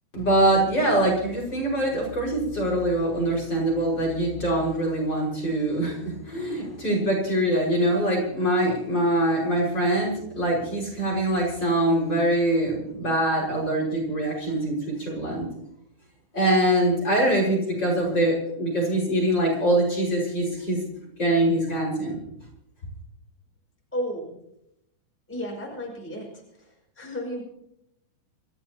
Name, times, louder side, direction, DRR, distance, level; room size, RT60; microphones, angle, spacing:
voice 1, 0.1-15.5 16.3-20.8 21.2-22.2, right 1 dB, 35° left, -4 dB, 6.2 m, -23 dB
voice 2, 23.9-24.3 25.3-27.4, equal, 5° left, -2 dB, 5.3 m, -33 dB
28.5 x 14.5 x 2.9 m, 0.78 s
omnidirectional pair, 3.5 m